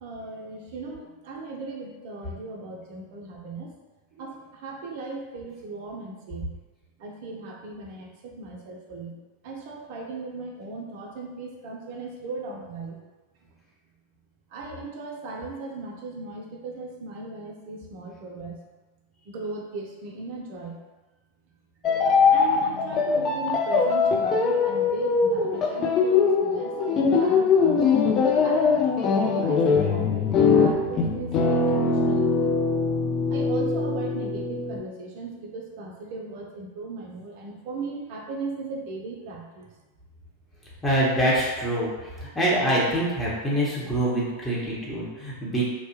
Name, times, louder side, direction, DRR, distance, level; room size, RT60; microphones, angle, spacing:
voice 1, 0.0-3.7 4.1-6.5 7.0-9.2 9.4-13.0 14.5-18.6 19.3-20.8 22.3-27.8 28.4-32.6 33.3-39.7, right 3 dB, 45° right, 1 dB, 0.5 m, -37 dB
sound 1, 21.8-34.8, left 5 dB, 30° left, 0.4 m, -22 dB
voice 2, 40.8-45.6, right 1 dB, 10° left, -7 dB, 0.9 m, -25 dB
2.7 x 2.3 x 2.8 m, 1.2 s
figure-of-eight pair, 90°, 0 cm